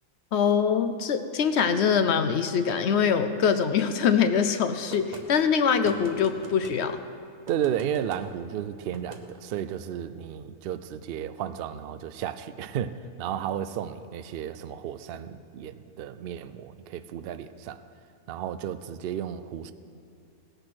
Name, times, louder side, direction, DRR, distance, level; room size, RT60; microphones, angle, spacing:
voice 1, 0.3-7.0, left 7 dB, 60° left, 10 dB, 0.7 m, -23 dB
sound 1, 4.9-5.3 5.8-6.8 7.5-8.2 8.9-9.2, right 3 dB, 35° right, 0.9 m, -43 dB
voice 2, 7.5-17.8 18.3-19.7, right 9 dB, 90° right, 12 dB, 0.5 m, -33 dB
18.0 x 6.7 x 6.0 m, 2.7 s
omnidirectional pair, 1.5 m